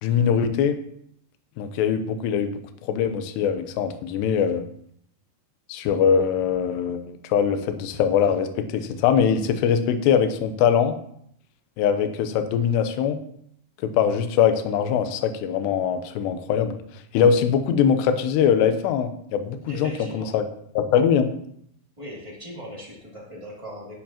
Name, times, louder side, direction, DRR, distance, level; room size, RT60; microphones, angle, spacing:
voice 1, 0.0-0.8 1.6-2.5 2.8-4.6 5.7-10.9 11.8-13.2 13.8-16.7 17.1-20.4 20.8-21.3, left 7 dB, 80° left, 8 dB, 2.6 m, -22 dB
voice 2, 19.7-20.4 22.0-24.0, equal, 35° right, -6 dB, 0.4 m, -39 dB
18.0 x 7.1 x 2.9 m, 0.70 s
omnidirectional pair, 5.5 m